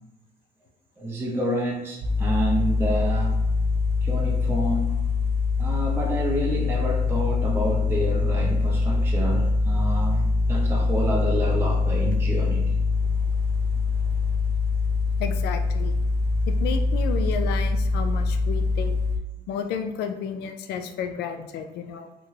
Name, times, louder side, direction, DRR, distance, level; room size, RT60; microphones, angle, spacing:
voice 1, 1.0-3.4 4.0-5.0 5.6-12.7, equal, 15° right, -2 dB, 0.6 m, -28 dB
sound 1, 2.0-19.2, left 3 dB, 85° right, 0.5 m, -23 dB
voice 2, 15.2-16.0 16.5-18.9 19.5-22.1, left 7 dB, 75° left, 7 dB, 0.4 m, -32 dB
3.6 x 2.2 x 3.2 m, 0.92 s
cardioid pair, 110°, 17 cm